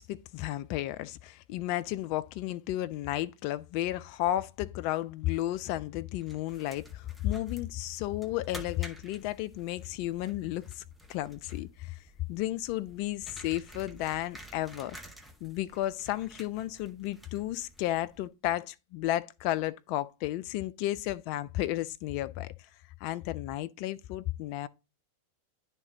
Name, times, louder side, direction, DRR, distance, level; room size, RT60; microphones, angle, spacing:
voice 1, 0.0-10.8 11.1-12.0 12.3-15.0 15.4-22.5 23.0-24.7, left 14 dB, 45° left, 0.4 m, -33 dB
sound 1, 6.2-18.3, right 1 dB, ahead, 0.9 m, -51 dB
10.5 x 3.7 x 2.8 m
figure-of-eight pair, 90°, 0 cm